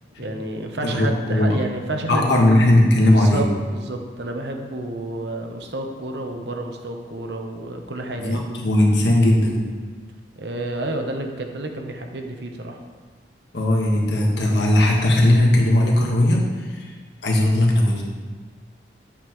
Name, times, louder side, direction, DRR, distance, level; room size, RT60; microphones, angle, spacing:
voice 1, 0.2-2.3 3.1-8.4 10.4-12.8, right 2 dB, 65° right, 4 dB, 0.9 m, -30 dB
voice 2, 0.8-1.6 2.1-3.4 8.2-9.6 13.5-16.9 17.2-18.0, left 1 dB, 70° left, -1 dB, 1.5 m, -18 dB
9.6 x 8.1 x 3.1 m, 1.5 s
head